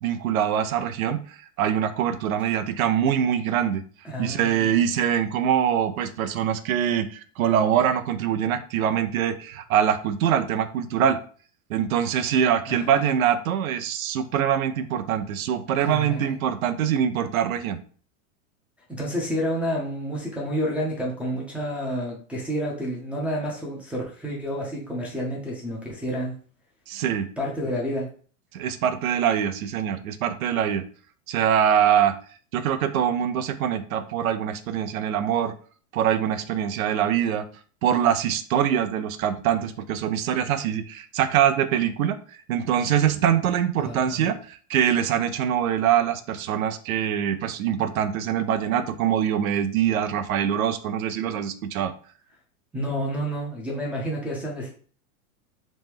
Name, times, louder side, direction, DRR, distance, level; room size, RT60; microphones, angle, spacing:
voice 1, 0.0-3.8 4.2-11.2 11.7-17.8 26.9-27.3 28.5-30.8 31.3-32.1 32.5-35.5 35.9-37.4 37.8-42.2 42.5-51.9, right 9 dB, 90° right, 10 dB, 0.5 m, -24 dB
voice 2, 4.0-4.8 12.7-13.1 15.8-16.4 18.9-26.3 27.4-28.1 43.8-44.3 52.7-54.7, equal, 5° right, -5 dB, 0.4 m, -29 dB
3.1 x 2.1 x 3.4 m, 0.43 s
hypercardioid pair, 125°, 41 cm